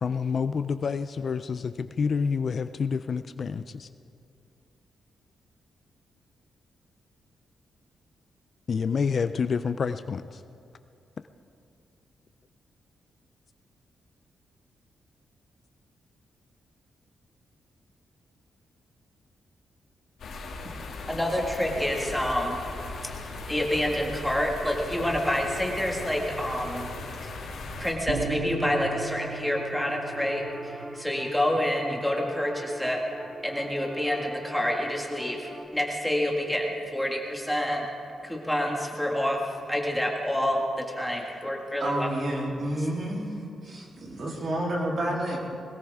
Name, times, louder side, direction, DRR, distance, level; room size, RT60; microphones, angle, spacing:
voice 1, 0.0-3.9 8.7-10.4, left 5 dB, 40° left, 11 dB, 0.4 m, -28 dB
sound 1, 20.2-27.9, left 3 dB, 75° left, 2.3 m, -38 dB
voice 2, 21.1-22.6 23.5-26.9 27.2-27.3 27.8-33.0 33.4-37.9 38.2-42.1, left 1 dB, 5° left, 0 dB, 1.7 m, -28 dB
sound 2, 28.1-33.3, right 5 dB, 85° right, 1.0 m, -39 dB
sound 3, 28.6-35.7, right 1 dB, 25° right, 1.3 m, -42 dB
voice 3, 41.8-43.4 43.6-45.4, right 1 dB, 45° right, -2 dB, 3.2 m, -30 dB
21.5 x 18.0 x 3.5 m, 2.5 s
wide cardioid pair, 150°, 0 cm